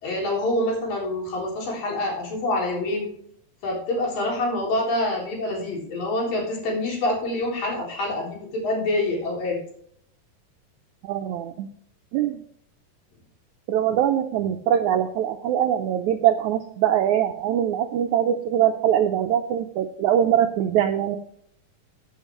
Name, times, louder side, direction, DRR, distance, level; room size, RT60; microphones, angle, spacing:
voice 1, 0.0-3.1 3.6-9.6, left 1 dB, 70° left, -3 dB, 5.4 m, -26 dB
voice 2, 11.0-11.7 12.1-12.4 13.7-21.2, right 10 dB, 90° right, 5 dB, 1.7 m, -22 dB
15.0 x 8.2 x 3.1 m, 0.65 s
omnidirectional pair, 4.1 m